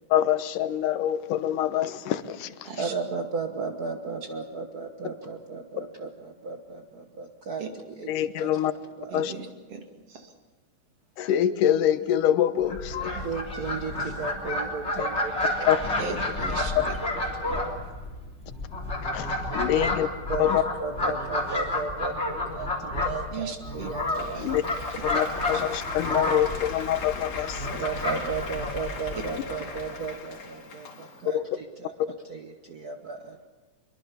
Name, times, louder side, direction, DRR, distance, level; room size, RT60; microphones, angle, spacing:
voice 1, 0.1-2.7 8.1-8.7 9.1-9.3 11.2-13.3 15.7-15.8 16.8-16.9 19.1-20.1 20.4-20.6 24.4-24.6 25.0-27.7 31.3-31.4, left 11 dB, 80° left, 12 dB, 2.6 m, -25 dB
voice 2, 2.8-7.6 8.0-8.5 9.0-9.2 13.1-16.1 17.4-17.6 19.8-19.9 20.3-24.6 25.0-25.1 27.8-31.9 32.3-33.5, right 4 dB, 85° right, 5 dB, 0.8 m, -35 dB
voice 3, 9.1-10.3 16.0-16.9 23.3-23.9 24.3-24.5 24.9-25.0 25.5-25.6 29.1-29.2, right 4 dB, 50° right, 4 dB, 3.1 m, -37 dB
Fowl, 12.6-29.9, left 1 dB, 20° left, 3.5 m, -30 dB
Applause, 23.7-31.3, left 4 dB, 60° left, 3.9 m, -40 dB
23.5 x 23.0 x 7.0 m, 1.3 s
omnidirectional pair, 3.7 m